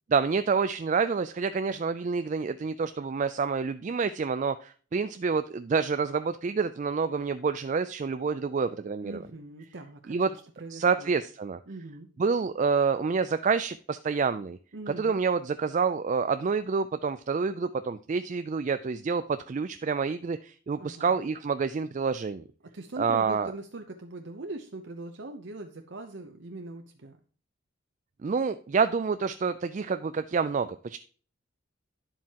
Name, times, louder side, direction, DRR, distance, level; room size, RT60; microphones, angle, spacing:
voice 1, 0.1-9.2 10.1-10.3 10.7-11.6 12.2-14.6 15.0-22.4 23.0-23.5 28.2-31.0, right 5 dB, 35° right, 11 dB, 0.3 m, -28 dB
voice 2, 9.0-11.2 11.7-12.1 14.7-15.2 20.8-21.2 22.7-27.2, right 2 dB, 60° right, 5 dB, 0.8 m, -41 dB
10.5 x 7.4 x 2.9 m, 0.41 s
head